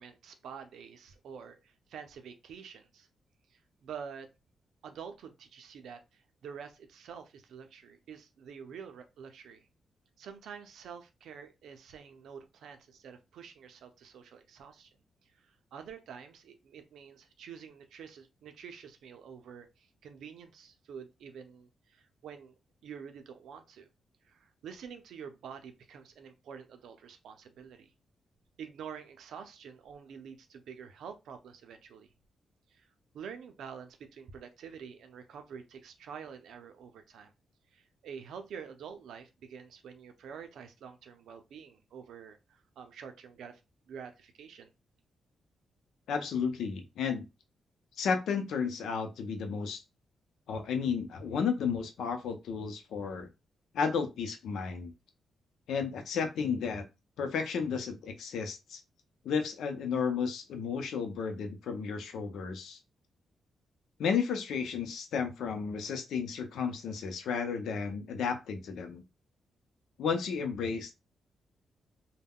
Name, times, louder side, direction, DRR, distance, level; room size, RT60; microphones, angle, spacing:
voice 1, 0.0-3.1 3.5-4.3 4.8-9.7 10.2-14.9 15.2-22.5 22.8-23.9 24.2-27.9 28.6-32.1 32.7-32.9 33.1-37.3 37.7-43.6 43.9-44.7, right 7 dB, 85° right, 0.5 m, -47 dB
voice 2, 46.1-47.3 48.0-49.8 50.5-53.3 53.7-54.9 55.7-56.8 57.2-58.8 59.2-62.8 64.0-69.0 70.0-70.9, left 6 dB, 90° left, 0.6 m, -33 dB
2.2 x 2.1 x 3.5 m
wide cardioid pair, 135°, 0 cm